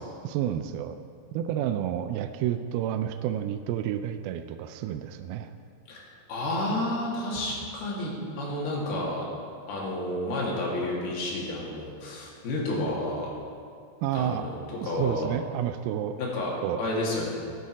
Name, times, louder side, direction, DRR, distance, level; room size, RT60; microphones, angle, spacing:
voice 1, 0.2-1.0 1.3-5.5 14.0-14.5 14.8-16.2 16.6-16.8, right 10 dB, 80° right, 9 dB, 2.2 m, -30 dB
voice 2, 6.3-9.2 9.7-13.3 14.1-15.2 16.2-16.5 16.8-17.3, left 1 dB, 70° left, -4 dB, 4.4 m, -30 dB
14.0 x 12.0 x 4.8 m, 2.3 s
omnidirectional pair, 4.7 m